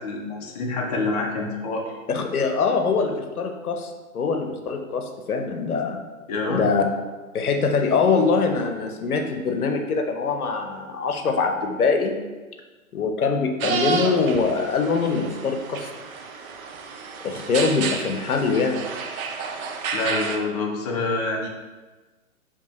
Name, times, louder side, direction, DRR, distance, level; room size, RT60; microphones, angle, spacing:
voice 1, 0.0-1.9 6.3-6.7 19.9-21.5, left 3 dB, 30° left, 0 dB, 0.5 m, -26 dB
voice 2, 2.1-6.0 6.5-6.8 7.3-12.2 12.9-15.9 17.2-18.8, left 4 dB, 85° left, 4 dB, 0.7 m, -23 dB
sound 1, 13.6-20.4, right 5 dB, 70° right, 0.6 m, -31 dB
4.6 x 2.8 x 2.9 m, 1.2 s
hypercardioid pair, 130°, 43 cm